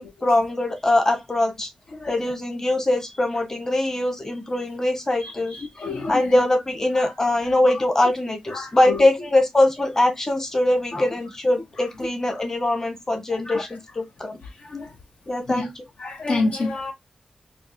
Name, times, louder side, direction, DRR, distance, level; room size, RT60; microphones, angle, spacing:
voice 1, 0.0-1.7 2.1-5.5 6.1-14.4 15.3-15.7, left 1 dB, 25° left, 1.1 m, -22 dB
voice 2, 5.2-6.4 6.9-7.1 8.5-9.1 10.9-11.1 12.3-12.4 13.5-13.6 14.7-14.9 15.5-15.7 16.0-16.9, left 3 dB, 75° left, 0.9 m, -29 dB
4.6 x 2.3 x 2.6 m
wide cardioid pair, 95°, 2 cm